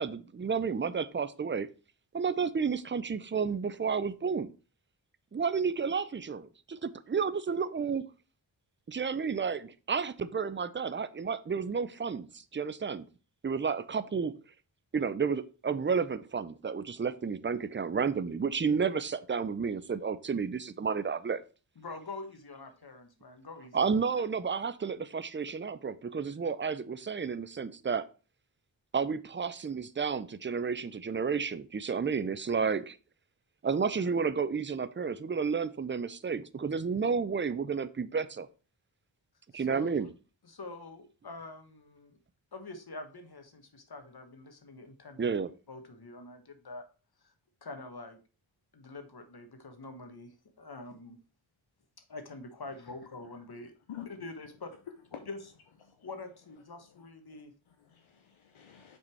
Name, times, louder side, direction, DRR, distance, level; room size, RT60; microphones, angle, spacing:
voice 1, 0.0-1.7 2.1-4.5 5.3-8.1 8.9-13.1 13.4-14.3 14.9-21.4 23.7-28.1 28.9-33.0 33.6-38.5 39.5-40.1 45.2-45.5, right 5 dB, 25° right, 15 dB, 0.5 m, -31 dB
voice 2, 21.8-23.9 39.5-40.1 40.4-42.2 42.5-45.4 45.7-46.9 47.2-47.3 47.6-48.2 48.7-51.2 52.1-53.7 54.2-54.7 55.1-55.4 56.0-57.5, left 3 dB, 50° left, 7 dB, 1.5 m, -45 dB
voice 3, 56.9-59.0, left 10 dB, 80° left, 5 dB, 0.9 m, -49 dB
6.1 x 4.2 x 4.6 m, 0.35 s
cardioid pair, 40°, 47 cm